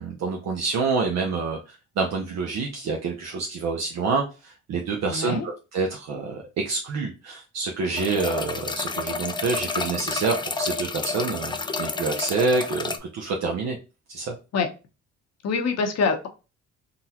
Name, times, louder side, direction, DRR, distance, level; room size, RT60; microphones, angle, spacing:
voice 1, 0.0-13.8 14.1-14.3, right 4 dB, 60° right, 1 dB, 0.7 m, -27 dB
voice 2, 5.1-5.5 14.5-14.7 15.4-16.3, left 5 dB, 60° left, 5 dB, 0.9 m, -24 dB
sound 1, 8.0-13.0, left 4 dB, 15° left, 0.4 m, -30 dB
3.8 x 2.3 x 2.8 m, 0.31 s
cardioid pair, 90°, 30 cm